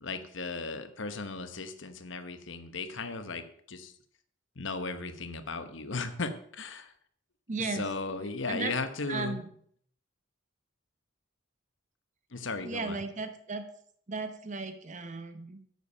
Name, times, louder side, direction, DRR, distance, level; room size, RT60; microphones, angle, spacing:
voice 1, 0.0-3.9 4.6-6.9 7.6-9.4 12.3-13.0, left 3 dB, 65° left, 10 dB, 1.1 m, -36 dB
voice 2, 7.5-7.8 8.5-8.7 9.1-9.5 12.6-13.6 14.1-15.8, right 3 dB, 35° right, 9 dB, 0.8 m, -35 dB
9.5 x 8.1 x 5.5 m, 0.62 s
head